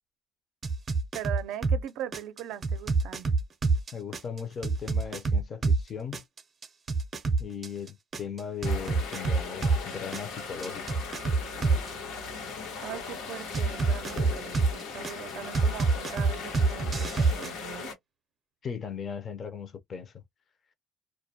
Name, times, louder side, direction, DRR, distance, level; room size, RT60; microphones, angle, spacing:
sound 1, 0.6-1.8 2.1-5.8 6.1-9.8 10.1-11.9 13.5-15.1 15.5-17.5, right 4 dB, 25° right, 0.5 m, -26 dB
voice 1, 1.1-3.3 12.8-17.9, right 11 dB, 75° right, 0.4 m, -40 dB
voice 2, 3.9-6.2 7.4-11.0 18.6-20.2, left 7 dB, 35° left, 0.5 m, -38 dB
sound 2, 8.6-17.9, left 5 dB, 85° left, 0.9 m, -38 dB
2.2 x 2.1 x 2.6 m
cardioid pair, 145°, 0 cm